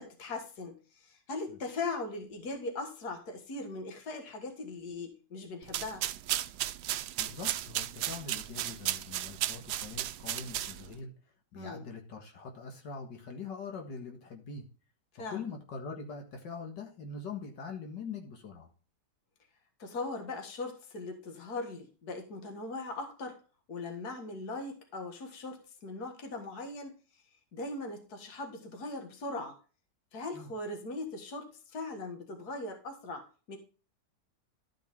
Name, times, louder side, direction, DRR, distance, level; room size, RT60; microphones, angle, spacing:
voice 1, 0.0-6.0 11.5-11.9 15.1-15.4 19.8-23.4 23.7-27.0 27.5-29.6 30.1-33.6, left 3 dB, 60° left, 5 dB, 2.1 m, -39 dB
sound 1, 5.6-11.0, right 13 dB, 75° right, 1.1 m, -35 dB
voice 2, 7.2-11.1 11.5-14.6 15.3-18.7 30.3-30.5, left 5 dB, 80° left, 2 dB, 2.3 m, -43 dB
12.5 x 5.5 x 3.6 m, 0.35 s
omnidirectional pair, 1.9 m